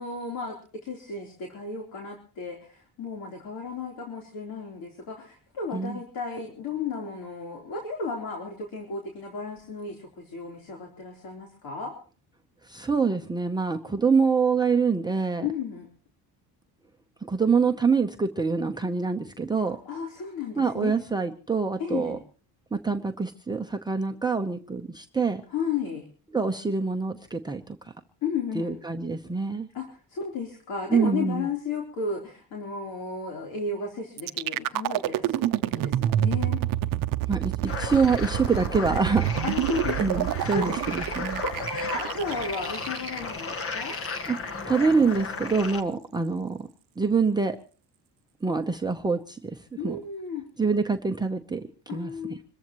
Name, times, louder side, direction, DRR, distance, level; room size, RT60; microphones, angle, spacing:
voice 1, 0.0-11.9 15.4-15.9 19.7-20.9 21.8-22.2 25.5-26.1 28.2-28.8 29.7-36.6 39.4-40.7 41.4-44.0 49.8-50.4 51.9-52.4, left 4 dB, 65° left, 0 dB, 3.8 m, -34 dB
voice 2, 12.7-15.5 17.3-19.8 20.6-22.2 22.7-25.4 26.3-27.8 28.5-29.7 30.9-31.5 37.3-39.3 40.0-41.4 44.3-44.4 44.7-46.7 47.0-47.6 48.4-49.6 49.8-50.0 50.6-52.4, right 4 dB, 10° right, 3 dB, 0.8 m, -25 dB
sound 1, 34.2-44.2, right 13 dB, 60° right, 0.7 m, -28 dB
sound 2, 37.7-45.8, left 4 dB, 35° left, 1.4 m, -35 dB
26.5 x 14.5 x 3.1 m, 0.40 s
cardioid pair, 140°, 38 cm